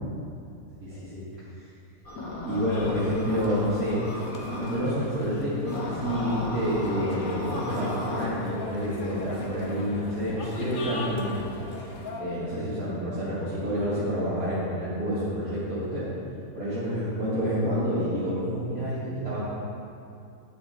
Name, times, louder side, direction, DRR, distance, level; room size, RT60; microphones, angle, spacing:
voice 1, 0.8-1.2 2.5-4.0 4.5-11.5 12.2-16.1 16.5-19.4, equal, 80° right, -12 dB, 2.2 m, -28 dB
sound 1, 2.0-4.8 5.7-8.3, left 2 dB, 80° left, 1.6 m, -36 dB
sound 2, 2.7-12.2, left 2 dB, 40° left, 1.0 m, -39 dB
9.6 x 7.1 x 3.7 m, 2.6 s
omnidirectional pair, 1.5 m